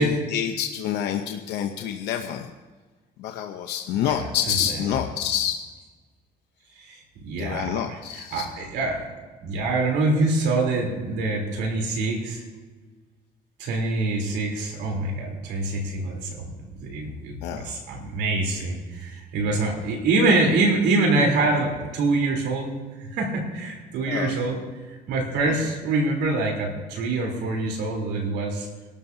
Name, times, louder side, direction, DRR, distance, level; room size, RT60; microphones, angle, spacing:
voice 1, 0.0-2.5 3.2-5.6 7.4-8.5 17.4-17.8 24.1-24.3 25.5-25.6, left 9 dB, 85° left, 4 dB, 0.8 m, -28 dB
voice 2, 4.0-4.8 6.8-9.1 9.4-12.4 13.6-16.5 16.8-22.7 23.0-24.6 25.1-28.7, right 2 dB, 90° right, 0 dB, 3.7 m, -25 dB
24.5 x 12.5 x 2.8 m, 1.3 s
cardioid pair, 110°, 17 cm